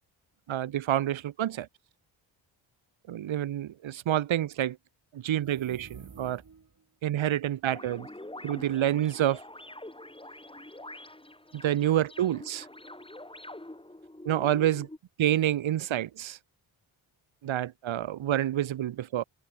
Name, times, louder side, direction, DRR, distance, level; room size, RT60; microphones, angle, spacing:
voice 1, 0.5-1.7 3.1-4.8 5.1-6.4 7.0-8.1 8.4-9.4 11.6-12.7 14.2-14.9 15.2-16.4 17.4-19.2, right 12 dB, 70° right, 1.5 m, -28 dB
sound 1, 5.3-6.8, right 5 dB, 45° right, 5.6 m, -50 dB
sound 2, 7.7-15.0, left 1 dB, 10° left, 4.6 m, -45 dB
cardioid pair, 60°, 48 cm